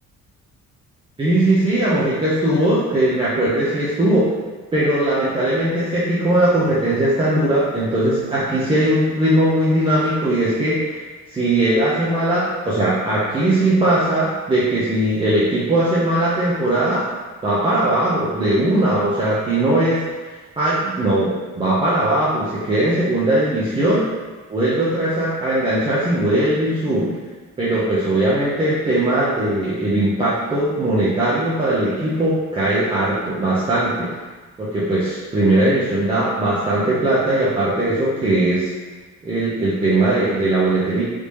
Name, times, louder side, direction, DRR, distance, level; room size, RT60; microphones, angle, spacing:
voice 1, 1.2-4.3 4.7-11.0 11.3-17.1 17.4-20.0 20.6-24.0 24.5-27.1 27.6-34.1 34.6-38.7 39.2-41.0, right 1 dB, 15° right, -9 dB, 0.4 m, -19 dB
3.3 x 2.7 x 3.1 m, 1.3 s
cardioid pair, 170°, 31 cm